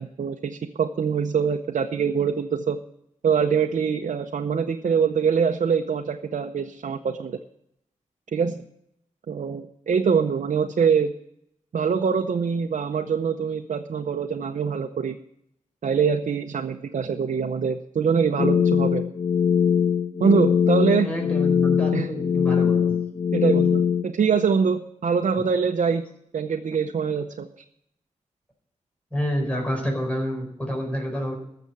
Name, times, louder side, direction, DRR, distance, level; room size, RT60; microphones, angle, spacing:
voice 1, 0.0-2.8 3.2-7.4 8.3-8.6 9.3-11.1 11.7-15.2 15.8-19.1 20.2-21.1 21.9-22.1 23.3-26.0 26.3-27.5, right 6 dB, 80° right, 4 dB, 0.7 m, -24 dB
sound 1, 18.4-24.0, left 7 dB, 45° left, 0.5 m, -21 dB
voice 2, 21.0-23.0 29.1-31.3, equal, 10° left, 0 dB, 4.6 m, -28 dB
14.0 x 6.9 x 9.6 m, 0.75 s
wide cardioid pair, 80°, 13 cm